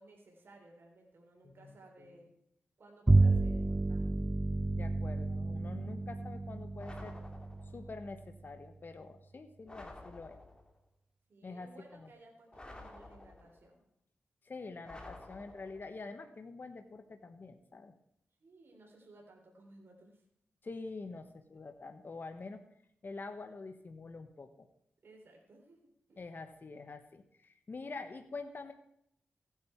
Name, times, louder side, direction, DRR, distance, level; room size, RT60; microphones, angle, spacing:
voice 1, 0.0-2.3 2.8-4.3 11.3-13.9 18.4-20.2 25.0-26.3, right 2 dB, 60° right, 0 dB, 3.6 m, -58 dB
Bowed string instrument, 3.1-8.7, right 2 dB, 15° right, 0.4 m, -31 dB
voice 2, 4.8-7.2 7.7-10.4 11.4-12.1 14.4-17.9 20.6-22.6 23.0-24.7 26.2-28.7, left 3 dB, 50° left, 7 dB, 1.3 m, -46 dB
sound 1, 6.8-7.9 9.7-10.8 12.5-13.7 14.8-16.0, left 2 dB, 20° left, 2.7 m, -51 dB
15.5 x 9.6 x 4.6 m, 0.74 s
cardioid pair, 60°, 4 cm